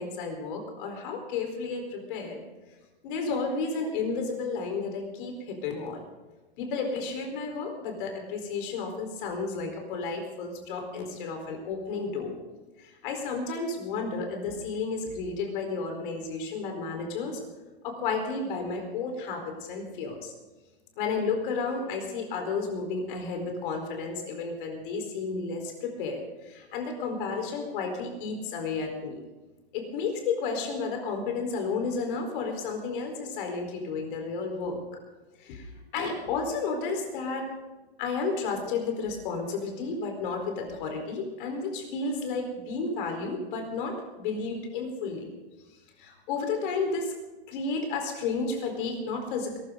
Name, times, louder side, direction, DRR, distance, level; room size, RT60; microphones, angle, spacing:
voice 1, 0.0-2.4 3.0-6.0 6.6-12.3 12.8-17.4 17.8-20.3 21.0-29.2 29.7-34.8 35.4-37.5 38.0-45.3 46.0-47.1 47.5-49.6, left 4 dB, 50° left, 3 dB, 4.5 m, -32 dB
21.5 x 13.5 x 4.0 m, 1.1 s
hypercardioid pair, 140°, 32 cm